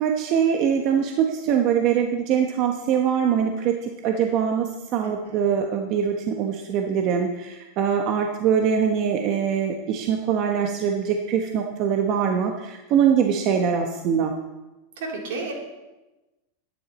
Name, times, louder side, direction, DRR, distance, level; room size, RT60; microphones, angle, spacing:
voice 1, 0.0-14.3, right 7 dB, 45° right, 3 dB, 1.0 m, -23 dB
voice 2, 5.0-5.4 15.0-15.5, right 3 dB, 75° right, -1 dB, 3.6 m, -32 dB
12.5 x 10.5 x 4.2 m, 1.1 s
supercardioid pair, 135°, 0 cm